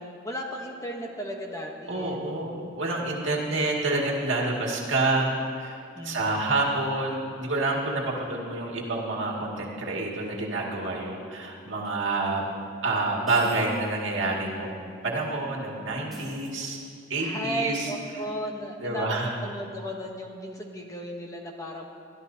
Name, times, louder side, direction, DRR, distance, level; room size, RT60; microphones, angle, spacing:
voice 1, 0.0-2.4 5.9-6.5 17.2-21.9, equal, 15° left, 1 dB, 0.9 m, -35 dB
voice 2, 1.9-12.4 12.8-16.8 17.1-17.9 18.8-19.4, right 2 dB, 60° right, -2 dB, 2.2 m, -28 dB
sound 1, 11.8-11.9 13.3-14.0 14.3-14.4 16.1-17.0, right 1 dB, ahead, 3.2 m, -47 dB
23.0 x 13.0 x 2.8 m, 2.4 s
head